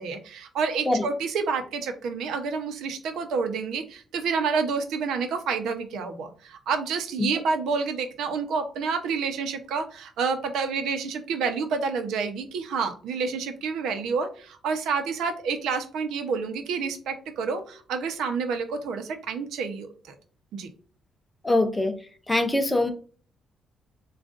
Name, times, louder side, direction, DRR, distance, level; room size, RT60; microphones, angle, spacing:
voice 1, 0.0-20.1 20.5-20.7, right 5 dB, 85° right, 0.8 m, -29 dB
voice 2, 21.4-21.9 22.3-22.9, left 2 dB, 10° left, 0.6 m, -23 dB
7.2 x 2.5 x 2.5 m
cardioid pair, 145°, 0 cm